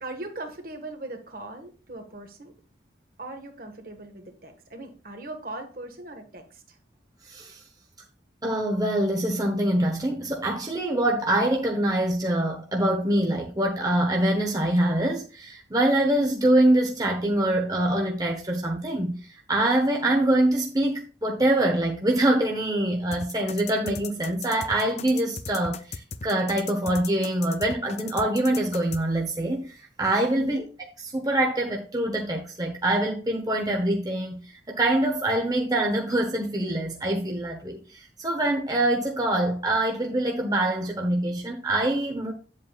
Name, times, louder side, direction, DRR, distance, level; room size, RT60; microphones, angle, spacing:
voice 1, 0.0-2.5 3.2-6.8 30.3-30.6, right 2 dB, 50° right, 1.5 m, -39 dB
voice 2, 7.2-7.6 8.4-30.6 31.0-34.4 34.7-42.3, right 1 dB, 20° right, 0.9 m, -24 dB
sound 1, 23.1-29.0, left 6 dB, 35° left, 0.4 m, -37 dB
9.2 x 7.5 x 2.4 m
head